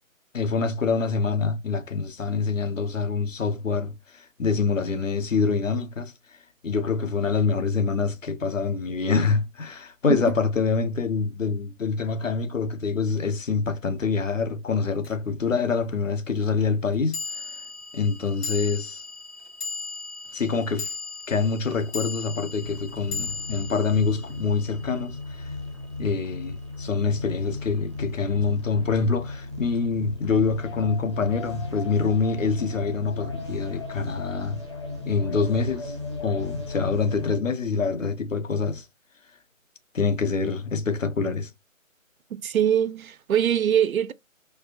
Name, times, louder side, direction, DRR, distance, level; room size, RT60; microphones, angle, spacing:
voice 1, 0.3-6.1 6.6-17.5 17.9-19.0 20.3-20.9 21.3-25.5 26.0-34.6 35.1-38.8 39.9-41.5, left 4 dB, 65° left, 1.0 m, -26 dB
sound 1, 15.0-15.1 17.1-25.6, left 4 dB, 50° left, 2.1 m, -37 dB
sound 2, 22.6-37.4, left 3 dB, 20° left, 0.6 m, -35 dB
voice 2, 42.3-44.1, right 9 dB, 80° right, 0.5 m, -23 dB
4.5 x 2.4 x 2.4 m
figure-of-eight pair, 155°, 41 cm